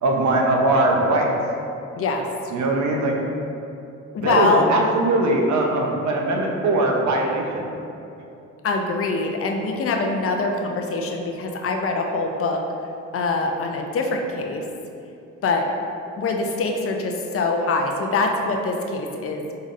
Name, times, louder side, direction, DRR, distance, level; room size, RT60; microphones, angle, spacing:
voice 1, 0.0-1.3 2.5-3.2 4.2-7.7, right 2 dB, 70° right, 0 dB, 0.7 m, -21 dB
voice 2, 2.0-2.3 4.1-4.7 8.6-12.6 13.1-14.6 15.4-15.7 16.1-19.4, left 3 dB, 50° left, 3 dB, 0.5 m, -24 dB
5.3 x 3.8 x 2.5 m, 2.7 s
cardioid pair, 90°, 30 cm